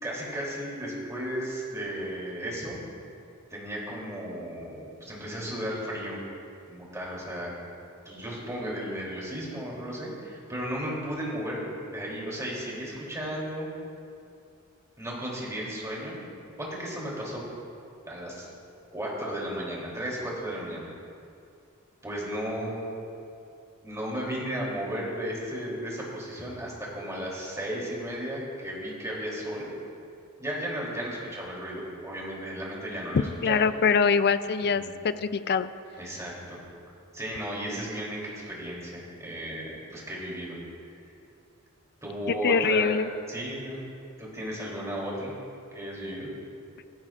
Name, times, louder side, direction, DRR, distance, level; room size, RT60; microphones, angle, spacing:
voice 1, 0.0-2.8 3.5-6.2 6.7-7.5 8.0-11.6 11.9-13.7 15.0-16.2 16.6-17.4 18.0-18.5 18.9-20.8 22.0-22.8 23.8-29.7 30.4-33.6 34.8-34.9 36.0-36.6 37.1-40.6 42.0-42.9 43.3-43.8 44.2-45.3 45.7-46.3, equal, 15° right, -4 dB, 3.1 m, -34 dB
voice 2, 33.1-35.7 42.3-43.1, left 5 dB, 50° left, 13 dB, 0.4 m, -24 dB
16.5 x 14.5 x 2.5 m, 2.5 s
head